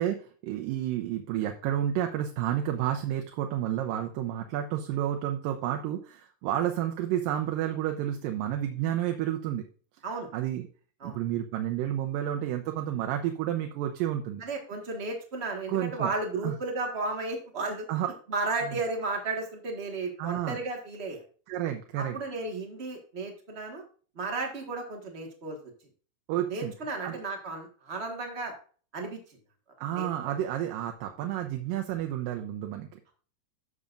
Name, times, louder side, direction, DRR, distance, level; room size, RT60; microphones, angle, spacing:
voice 1, 0.0-9.7 10.3-10.7 11.0-14.4 15.7-16.1 16.4-16.6 17.9-18.1 20.2-20.6 21.5-22.2 26.3-26.7 27.0-27.2 29.8-33.0, right 11 dB, 80° right, 4 dB, 2.4 m, -30 dB
voice 2, 14.4-17.9 18.3-21.2 22.0-23.8 24.1-25.6 26.5-28.5 28.9-29.2 29.9-30.1, right 3 dB, 45° right, 2 dB, 0.8 m, -34 dB
12.5 x 6.8 x 2.5 m, 0.41 s
omnidirectional pair, 4.0 m